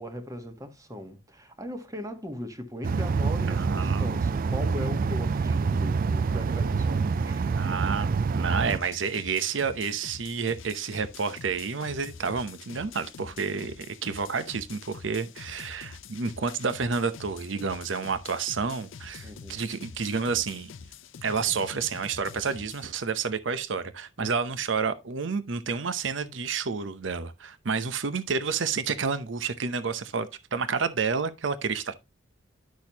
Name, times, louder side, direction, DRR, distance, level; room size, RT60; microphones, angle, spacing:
voice 1, 0.0-7.4 19.2-19.6 24.2-24.3 27.7-27.8, left 1 dB, 15° right, 1.3 m, -39 dB
sound 1, 2.8-8.8, right 4 dB, 45° right, 0.3 m, -26 dB
voice 2, 3.5-4.2 7.5-20.7 21.2-31.9, right 5 dB, 70° right, 0.8 m, -30 dB
sound 2, 8.7-22.9, left 5 dB, 75° left, 0.6 m, -46 dB
10.5 x 6.3 x 2.9 m
head